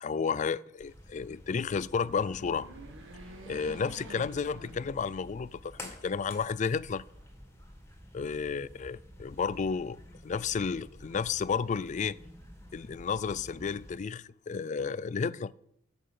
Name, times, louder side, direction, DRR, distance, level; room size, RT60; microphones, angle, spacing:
voice 1, 0.0-2.7 3.5-7.0 8.1-12.2 12.7-15.5, left 5 dB, 35° left, 0.3 m, -32 dB
sound 1, 0.8-14.0, left 1 dB, 15° left, 2.0 m, -50 dB
sound 2, 1.9-5.5 5.9-6.0 7.1-7.9, right 2 dB, 70° right, 2.0 m, -49 dB
13.5 x 6.0 x 7.6 m
head